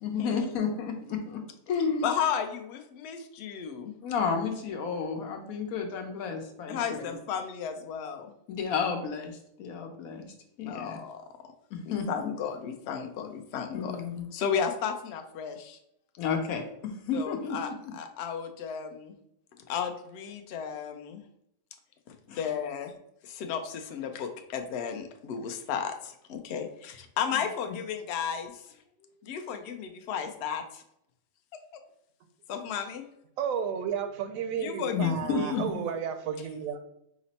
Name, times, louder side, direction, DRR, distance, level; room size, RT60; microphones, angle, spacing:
voice 1, 0.0-2.1 4.0-6.8 7.1-7.2 8.5-11.0 11.7-12.3 13.7-14.3 16.2-17.8 22.3-22.4 27.3-27.8 34.9-35.8, left 5 dB, 85° left, 4 dB, 1.2 m, -32 dB
voice 2, 2.0-3.9 6.7-8.3 10.7-11.2 11.9-14.0 14.3-15.8 17.1-19.1 19.7-21.2 22.1-23.0 23.2-28.6 29.2-30.8 32.5-33.0 34.6-35.6, left 7 dB, 65° left, 6 dB, 0.7 m, -34 dB
voice 3, 33.4-36.8, right 7 dB, 75° right, 7 dB, 1.0 m, -32 dB
5.0 x 2.0 x 4.0 m, 0.76 s
omnidirectional pair, 1.5 m